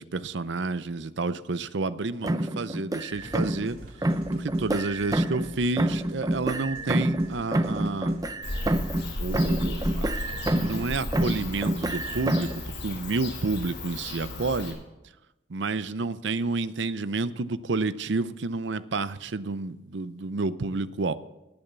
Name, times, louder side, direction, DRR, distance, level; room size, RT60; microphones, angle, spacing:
voice 1, 0.0-3.8 4.3-8.2 9.2-10.1 10.5-12.5 12.8-14.8 15.5-21.1, right 3 dB, 75° right, 14 dB, 0.6 m, -30 dB
sound 1, 2.2-3.7 4.0-5.5 5.8-9.1 9.3-10.8 11.1-12.6, right 1 dB, 20° right, 0.6 m, -27 dB
sound 2, 3.1-12.3, equal, 55° right, 3.1 m, -47 dB
Bird / Cricket, 8.4-14.7, left 1 dB, 70° left, 5.7 m, -34 dB
19.0 x 7.1 x 6.9 m, 1.0 s
head